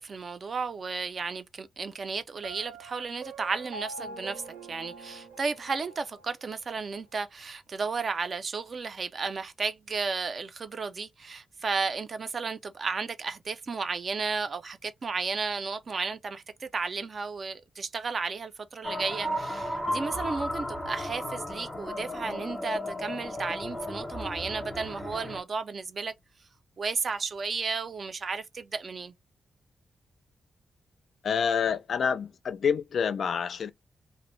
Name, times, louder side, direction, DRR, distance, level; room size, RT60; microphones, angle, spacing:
voice 1, 0.0-26.1 26.8-29.1, right 4 dB, 35° right, 0.3 m, -33 dB
Piano, 2.4-6.3, right 3 dB, 85° right, 0.7 m, -44 dB
sound 1, 18.8-25.4, left 1 dB, 10° left, 0.6 m, -34 dB
voice 2, 31.2-33.7, left 7 dB, 50° left, 0.3 m, -27 dB
2.5 x 2.0 x 3.0 m
wide cardioid pair, 175°, 0 cm